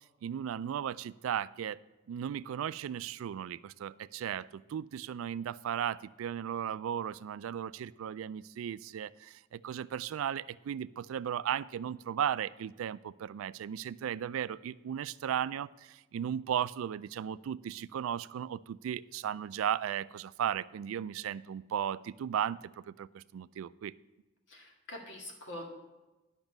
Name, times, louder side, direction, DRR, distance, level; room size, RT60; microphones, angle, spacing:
voice 1, 0.2-1.8 2.1-22.6 22.9-23.9, right 9 dB, 85° right, 18 dB, 0.3 m, -36 dB
voice 2, 24.5-25.6, left 1 dB, 60° left, 1 dB, 1.9 m, -44 dB
11.0 x 5.9 x 5.3 m, 1.1 s
head